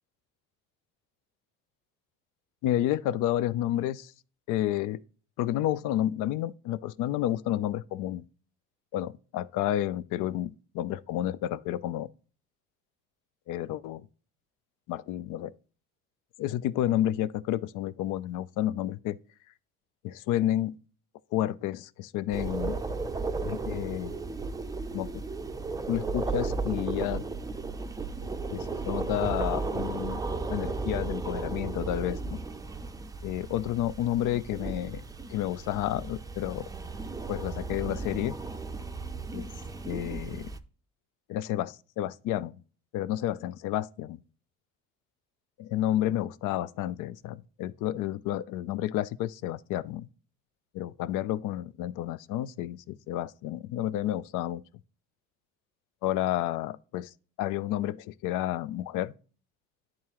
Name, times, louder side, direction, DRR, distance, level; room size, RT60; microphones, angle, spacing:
voice 1, 2.6-4.1 4.5-5.0 5.4-8.2 8.9-12.1 13.5-14.1 14.9-15.5 16.4-19.2 20.0-20.7 21.3-22.8 23.4-24.2 24.9-25.2 25.9-27.3 28.5-30.2 30.5-32.4 33.2-35.0 35.3-36.7 37.3-38.4 39.3-39.5 39.9-40.5 41.3-42.6 42.9-44.2 45.6-50.1 50.7-54.6 56.0-57.1 57.4-59.1, left 13 dB, 70° left, 0.5 m, -30 dB
sound 1, 22.3-40.6, right 3 dB, 10° right, 0.5 m, -35 dB
10.5 x 3.7 x 2.9 m
cardioid pair, 105°, 33 cm